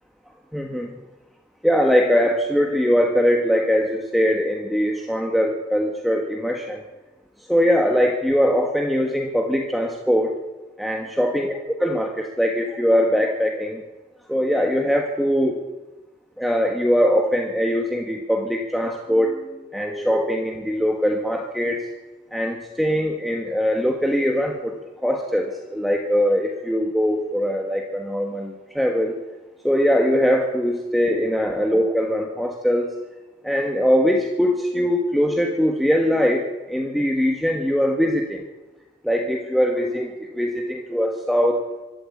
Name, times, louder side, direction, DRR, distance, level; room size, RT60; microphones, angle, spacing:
voice 1, 0.5-0.9 1.6-6.8 7.5-10.4 10.8-13.8 14.3-15.6 16.4-21.9 22.3-24.7 25.0-29.2 29.6-32.9 33.4-38.4 39.0-41.6, equal, ahead, 2 dB, 1.5 m, -21 dB
25.0 x 12.5 x 8.6 m, 1.2 s
head